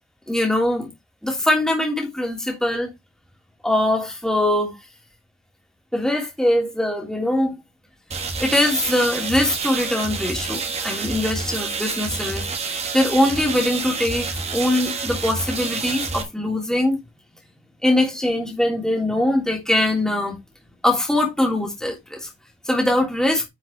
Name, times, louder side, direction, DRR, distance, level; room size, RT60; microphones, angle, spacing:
voice 1, 0.3-0.9 1.2-2.9 3.6-4.7 5.9-7.5 8.4-12.4 12.9-17.0 17.8-20.4 20.8-22.3 22.7-23.4, left 1 dB, 5° left, 3.1 m, -22 dB
sound 1, 8.1-16.2, right 4 dB, 30° right, 1.5 m, -28 dB
10.5 x 5.7 x 3.1 m
head